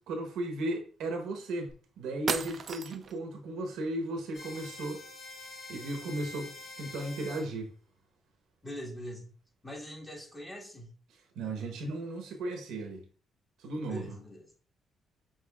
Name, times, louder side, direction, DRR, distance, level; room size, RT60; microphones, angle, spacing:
voice 1, 0.1-5.0 5.7-7.7 11.4-13.0 13.6-14.2, right 2 dB, 85° right, 0.9 m, -36 dB
sound 1, 1.7-1.8 2.3-3.2, right 5 dB, 45° right, 0.4 m, -34 dB
sound 2, 4.3-7.5, left 2 dB, 45° left, 1.6 m, -46 dB
voice 2, 8.6-9.3 9.6-10.9 13.9-14.5, equal, 15° left, 1.5 m, -42 dB
6.4 x 3.0 x 2.3 m
cardioid pair, 90°, 0 cm